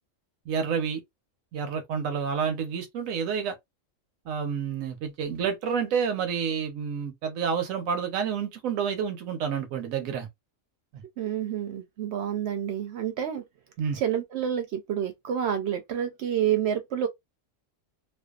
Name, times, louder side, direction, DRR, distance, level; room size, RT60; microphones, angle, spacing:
voice 1, 0.5-1.0 1.5-3.6 4.3-10.3 10.9-11.0 13.8-14.0, right 7 dB, 90° right, 1.0 m, -29 dB
voice 2, 11.2-13.4 13.9-17.1, right 9 dB, 65° right, 0.7 m, -28 dB
2.5 x 2.2 x 2.3 m
omnidirectional pair, 1.4 m